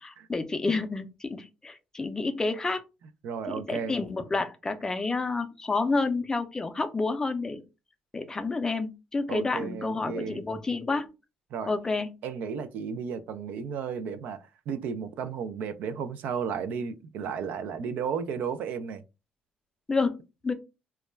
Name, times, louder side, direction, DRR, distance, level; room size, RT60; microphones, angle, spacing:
voice 1, 0.0-2.8 3.5-7.6 8.1-11.1 11.7-12.1 19.9-20.5, left 3 dB, 20° left, 0.4 m, -29 dB
voice 2, 3.2-3.9 9.3-10.4 11.5-11.7 12.2-19.0, right 6 dB, 70° right, 0.3 m, -33 dB
2.3 x 2.1 x 3.1 m
cardioid pair, 105°, 3 cm